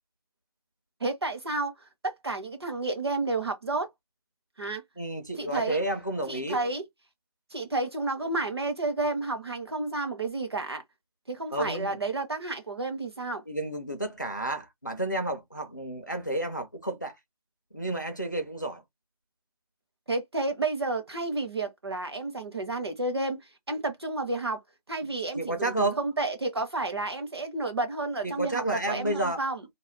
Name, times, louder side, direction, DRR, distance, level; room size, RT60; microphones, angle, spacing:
voice 1, 1.0-1.7 2.0-3.9 4.6-4.8 5.4-5.8 6.3-6.8 7.5-10.8 11.3-13.4 20.1-24.6 24.9-29.7, right 2 dB, 40° right, 0.7 m, -31 dB
voice 2, 5.0-6.6 11.5-12.0 13.5-17.1 17.7-18.8 25.4-26.0 28.2-29.4, right 1 dB, 30° left, 0.4 m, -31 dB
2.3 x 2.3 x 3.2 m
figure-of-eight pair, 165°, 20 cm